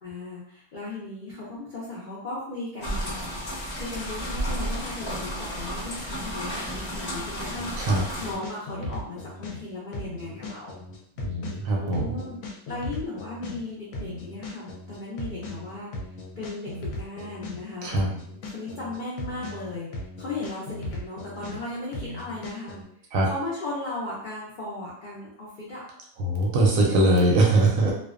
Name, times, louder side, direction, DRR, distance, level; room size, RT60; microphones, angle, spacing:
voice 1, 0.0-3.4 3.7-7.7 8.2-10.8 11.8-15.9 16.4-17.9 18.5-22.8 23.2-25.8 26.6-27.2, left 2 dB, 85° left, -6 dB, 0.4 m, -36 dB
sound 1, 2.8-8.3, equal, 25° left, 0.6 m, -32 dB
sound 2, 7.5-9.6 9.9-13.6 13.9-17.6 17.9-21.6 21.9-22.8, left 2 dB, 70° left, 0.9 m, -37 dB
voice 2, 11.2-12.1 17.8-18.1 23.1-23.3 26.2-27.9, right 2 dB, 70° right, -1 dB, 0.9 m, -21 dB
2.5 x 2.1 x 2.4 m, 0.68 s
omnidirectional pair, 1.7 m